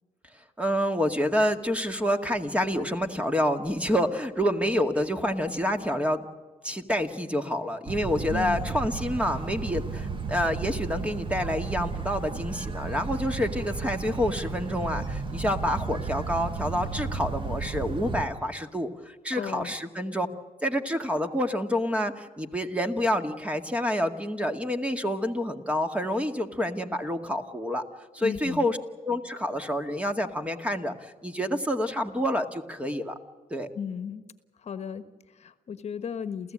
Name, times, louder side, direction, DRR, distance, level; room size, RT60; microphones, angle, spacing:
voice 1, 0.6-6.3 6.6-20.3 20.6-27.8 28.1-33.2 33.5-33.7, equal, 10° right, 6 dB, 2.0 m, -28 dB
sound 1, 7.9-18.2, right 4 dB, 35° right, 1.8 m, -33 dB
voice 2, 8.3-8.7 19.3-19.7 28.2-28.7 33.7-34.2 34.6-36.5, left 7 dB, 50° left, 11 dB, 1.4 m, -35 dB
29.0 x 15.0 x 8.8 m, 1.4 s
cardioid pair, 85°, 14 cm